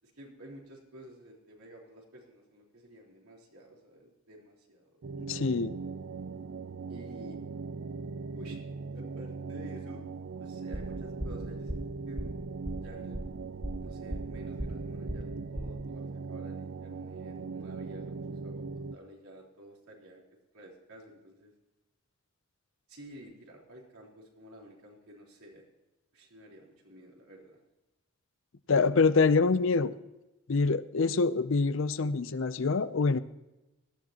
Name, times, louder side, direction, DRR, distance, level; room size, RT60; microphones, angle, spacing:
voice 1, 0.0-5.0 6.9-7.4 8.3-8.6 8.9-10.0 10.4-12.4 12.8-13.2 13.8-20.2 20.5-21.5 22.9-25.6 26.1-27.6, equal, 85° right, -2 dB, 3.8 m, -51 dB
sound 1, 5.0-19.0, right 4 dB, 65° right, 0.4 m, -39 dB
voice 2, 5.3-5.7 28.7-29.9 30.5-33.2, left 4 dB, 65° left, 15 dB, 0.5 m, -25 dB
sound 2, 10.7-15.8, equal, 5° right, 0.7 m, -38 dB
18.0 x 13.5 x 2.9 m, 1.0 s
head